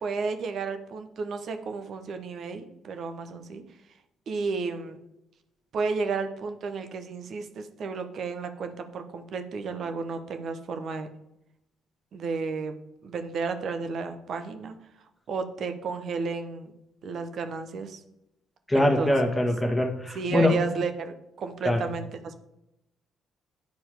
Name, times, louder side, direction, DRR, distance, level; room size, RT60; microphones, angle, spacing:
voice 1, 0.0-3.6 4.3-5.0 5.7-11.1 12.1-12.7 13.0-14.7 15.3-16.7 17.0-18.0 18.7-19.1 20.1-22.3, right 4 dB, 50° right, 8 dB, 0.9 m, -32 dB
voice 2, 18.7-20.6 21.6-21.8, left 1 dB, 10° left, 2 dB, 1.7 m, -23 dB
10.5 x 4.5 x 5.0 m, 0.86 s
figure-of-eight pair, 45°, 0 cm